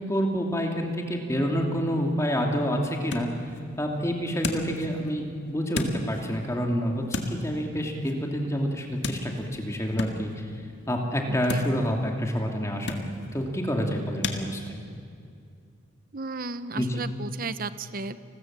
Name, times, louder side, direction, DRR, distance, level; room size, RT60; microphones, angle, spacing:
voice 1, 0.1-3.3 3.8-10.5 10.9-13.0 13.3-14.8 16.7-16.9, equal, 15° left, 1 dB, 2.6 m, -28 dB
sound 1, 1.9-14.4, left 2 dB, 55° left, 2.0 m, -38 dB
voice 2, 11.3-11.7 16.1-18.2, right 3 dB, 45° right, 13 dB, 0.8 m, -34 dB
29.5 x 20.5 x 7.5 m, 2.4 s
head